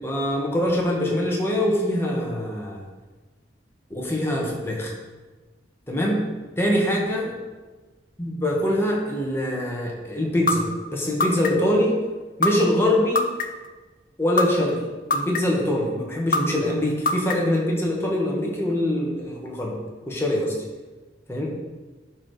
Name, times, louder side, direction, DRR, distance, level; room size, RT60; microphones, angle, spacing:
voice 1, 0.0-2.8 3.9-4.9 5.9-6.2 6.6-7.3 8.2-12.0 12.4-13.3 14.2-14.8 15.1-19.7 20.1-20.6 21.3-21.5, left 1 dB, 15° left, -2 dB, 1.7 m, -23 dB
sound 1, 10.5-10.6 11.2-11.7 12.4-12.5 13.1-13.7 14.4-14.5 15.1-15.6 16.3-16.4 17.1-17.6, left 3 dB, 50° left, 0.8 m, -21 dB
11.5 x 4.7 x 5.0 m, 1.3 s
head